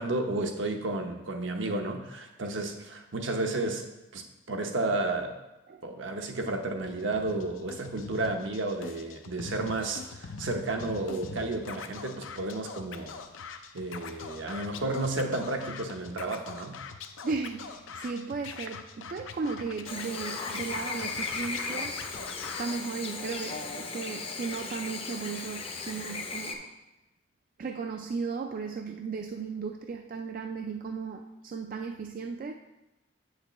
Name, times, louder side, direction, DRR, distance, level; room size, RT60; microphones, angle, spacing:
voice 1, 0.0-3.8 4.1-5.4 5.8-13.2 13.7-16.8, right 2 dB, 75° right, 4 dB, 0.8 m, -32 dB
Scratching (performance technique), 6.8-22.7, left 5 dB, 85° left, 0.5 m, -43 dB
voice 2, 17.2-22.0 22.6-26.7 27.6-32.5, right 4 dB, 45° right, 4 dB, 0.3 m, -35 dB
Chirp tweet / Buzz, 19.8-26.5, left 4 dB, 30° left, 0.6 m, -36 dB
8.0 x 6.5 x 3.0 m, 1.0 s
head